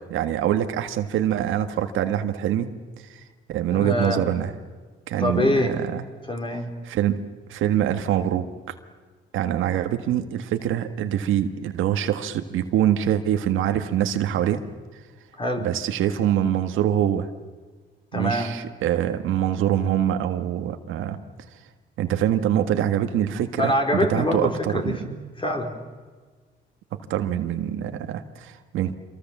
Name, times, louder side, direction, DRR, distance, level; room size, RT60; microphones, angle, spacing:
voice 1, 0.1-2.7 3.1-3.2 3.5-4.5 5.1-6.0 6.9-7.2 7.5-8.5 9.3-14.6 15.6-17.3 18.1-21.2 22.0-25.1 27.1-28.9, right 10 dB, 85° right, 7 dB, 1.7 m, -24 dB
voice 2, 3.7-4.2 5.2-5.7 6.3-6.7 15.4-15.7 18.1-18.5 23.6-25.7, left 1 dB, 25° left, 3 dB, 4.7 m, -25 dB
27.5 x 23.5 x 7.4 m, 1.5 s
cardioid pair, 90°, 20 cm